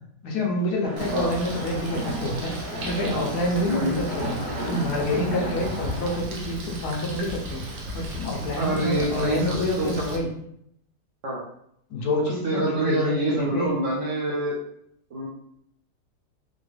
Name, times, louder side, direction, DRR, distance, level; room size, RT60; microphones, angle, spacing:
voice 1, 0.2-10.3 11.9-13.7, left 1 dB, 75° left, 0 dB, 1.2 m, -28 dB
sound 1, 0.8-6.2, right 1 dB, 40° right, 1.2 m, -33 dB
Bird, 1.0-10.2, equal, 80° right, 1.3 m, -36 dB
voice 2, 3.7-4.0 8.6-10.1 11.2-11.4 12.3-14.6 15.1-15.3, right 1 dB, 60° right, -3 dB, 0.9 m, -26 dB
3.9 x 2.2 x 3.1 m, 0.70 s
omnidirectional pair, 1.8 m